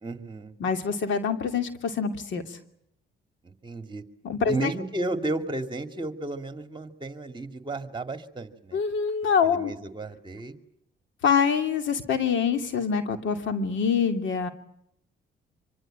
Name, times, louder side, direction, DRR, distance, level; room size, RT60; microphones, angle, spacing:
voice 1, 0.0-0.5 3.4-4.0 4.5-8.8 9.4-10.6, right 2 dB, 25° right, 8 dB, 2.3 m, -33 dB
voice 2, 0.6-2.6 4.2-4.7 8.7-9.7 11.2-14.5, left 6 dB, 70° left, 7 dB, 2.8 m, -25 dB
25.5 x 24.5 x 8.9 m, 0.75 s
cardioid pair, 90°, 20 cm